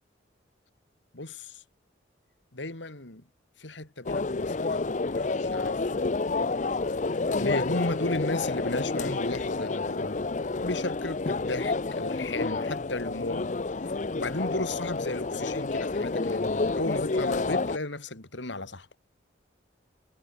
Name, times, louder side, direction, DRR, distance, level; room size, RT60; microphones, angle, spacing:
voice 1, 1.1-1.6 2.5-3.2 3.6-5.9 7.4-10.3 10.6-13.6 14.1-18.9, left 2 dB, 75° left, 3.0 m, -34 dB
sound 1, 4.1-17.8, left 3 dB, 40° left, 0.6 m, -29 dB
head